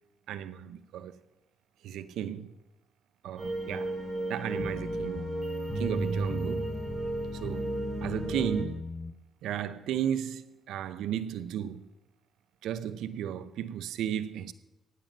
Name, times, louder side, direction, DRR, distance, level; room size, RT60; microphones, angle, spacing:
voice 1, 0.3-1.2 1.8-2.5 3.2-4.0 4.3-5.3 5.8-6.8 7.4-8.8 9.4-11.9 12.6-14.5, right 10 dB, 85° right, 0.7 m, -34 dB
sound 1, 3.4-8.6, right 2 dB, 25° right, 4.3 m, -34 dB
sound 2, 4.6-9.1, left 4 dB, 35° left, 0.7 m, -39 dB
16.0 x 9.0 x 5.4 m
cardioid pair, 90°, 0 cm